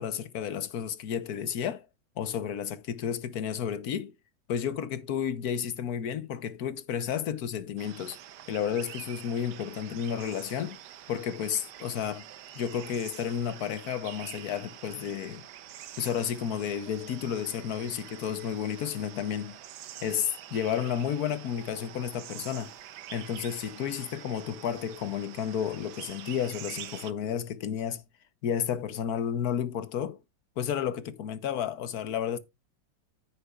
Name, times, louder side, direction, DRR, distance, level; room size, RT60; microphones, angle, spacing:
voice 1, 0.0-1.9 2.2-4.1 4.5-8.2 8.5-10.8 11.1-12.2 12.5-15.4 16.0-19.6 20.0-22.7 23.1-28.0 28.4-30.2 30.6-32.4, left 8 dB, 60° left, 1.3 m, -32 dB
sound 1, 7.8-27.1, right 11 dB, 70° right, 1.3 m, -46 dB
9.8 x 9.6 x 2.4 m
omnidirectional pair, 2.1 m